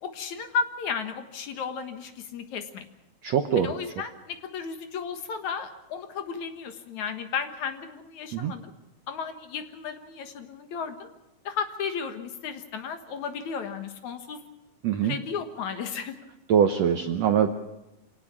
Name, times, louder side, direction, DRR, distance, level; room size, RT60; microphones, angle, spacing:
voice 1, 0.0-2.9 3.6-8.7 9.1-11.1 11.4-14.4 15.0-16.2, left 6 dB, 60° left, 7 dB, 2.4 m, -34 dB
voice 2, 3.2-3.7 8.3-8.5 14.8-15.1 16.5-17.5, right 8 dB, 85° right, 7 dB, 1.5 m, -23 dB
25.5 x 18.5 x 6.0 m, 0.96 s
omnidirectional pair, 4.4 m